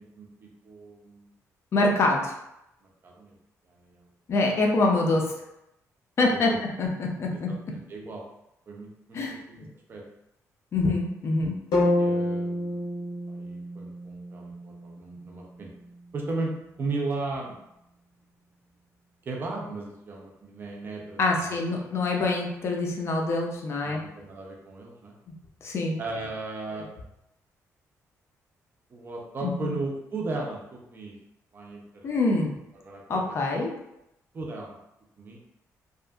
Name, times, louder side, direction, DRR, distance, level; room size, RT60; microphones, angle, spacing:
voice 1, 0.0-1.3 2.8-3.3 3.6-4.1 6.3-6.6 7.5-8.2 8.7-9.2 9.5-10.0 11.7-12.8 13.3-15.7 16.1-17.5 19.2-21.8 23.8-25.1 26.0-26.9 28.9-31.2 31.5-32.2 32.7-33.4 34.3-34.8 35.2-35.4, right 3 dB, 35° right, -1 dB, 0.5 m, -36 dB
voice 2, 1.7-2.3 4.3-5.3 6.2-6.5 6.8-7.5 9.1-9.4 10.7-11.6 21.2-24.0 25.6-26.0 29.4-29.7 32.0-32.5 33.1-33.7, left 2 dB, 45° left, 0 dB, 0.4 m, -25 dB
sound 1, 11.7-15.8, left 1 dB, 80° left, 0.7 m, -29 dB
2.7 x 2.4 x 2.3 m, 0.84 s
cardioid pair, 130°, 6 cm